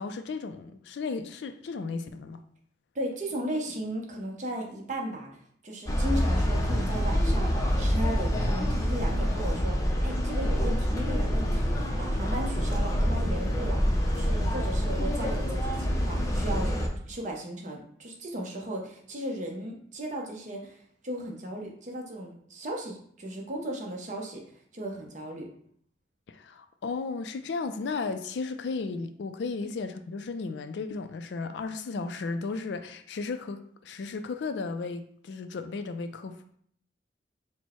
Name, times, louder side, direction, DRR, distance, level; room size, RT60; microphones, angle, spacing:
voice 1, 0.0-2.4 26.3-36.4, left 4 dB, 70° left, 9 dB, 0.4 m, -34 dB
voice 2, 2.9-16.7 17.1-24.4 24.7-25.5, right 1 dB, 40° right, 0 dB, 0.8 m, -36 dB
sound 1, 5.9-16.9, equal, 20° left, 0.5 m, -26 dB
4.4 x 2.1 x 4.3 m, 0.63 s
head